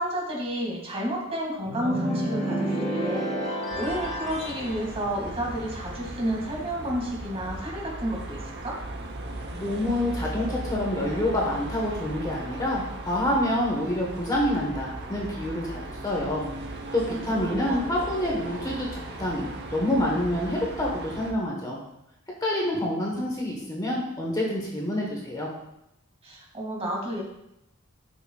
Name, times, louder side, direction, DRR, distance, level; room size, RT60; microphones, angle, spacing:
voice 1, 0.0-8.8 17.1-17.8 26.2-27.2, equal, 30° right, -2 dB, 2.1 m, -31 dB
sound 1, 1.7-4.7, right 1 dB, 35° left, 3.3 m, -29 dB
sound 2, 3.7-21.3, right 2 dB, 50° right, 0.9 m, -37 dB
voice 2, 9.5-16.4 16.9-21.8 22.4-25.5, left 1 dB, 20° left, -2 dB, 1.3 m, -27 dB
12.0 x 6.2 x 2.4 m, 0.85 s
head